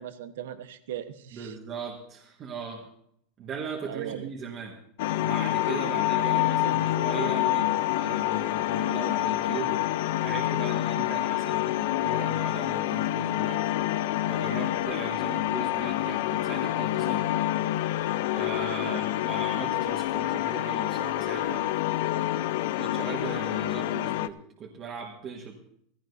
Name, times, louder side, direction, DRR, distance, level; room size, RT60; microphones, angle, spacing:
voice 1, 0.0-1.6 3.9-4.3 5.7-6.0 18.8-19.0, right 11 dB, 85° right, 10 dB, 1.1 m, -38 dB
voice 2, 1.3-2.9 3.4-4.8 5.2-9.8 10.2-13.6 14.3-17.4 18.3-21.7 22.8-25.6, right 5 dB, 25° right, 0 dB, 1.5 m, -38 dB
sound 1, 5.0-24.3, left 14 dB, 60° left, 0.5 m, -27 dB
16.0 x 15.5 x 2.7 m, 0.68 s
supercardioid pair, 165°, 0 cm